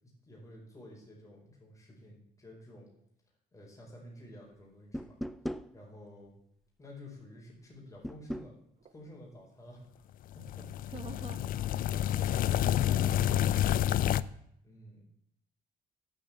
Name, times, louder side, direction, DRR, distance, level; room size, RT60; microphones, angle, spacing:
voice 1, 0.0-2.9 3.5-5.2 5.7-6.3 6.8-8.5 8.9-10.0 10.3-10.7 11.3-11.4 14.6-15.0, left 1 dB, 20° left, -3 dB, 4.9 m, -52 dB
sound 1, 4.9-5.7 8.0-8.5, equal, ahead, 0.5 m, -37 dB
sound 2, 10.3-14.2, left 11 dB, 55° left, 0.5 m, -29 dB
voice 2, 10.9-11.4 12.6-14.3, right 6 dB, 40° right, 10 dB, 1.4 m, -49 dB
10.5 x 7.6 x 8.4 m, 0.73 s
cardioid pair, 110°, 17 cm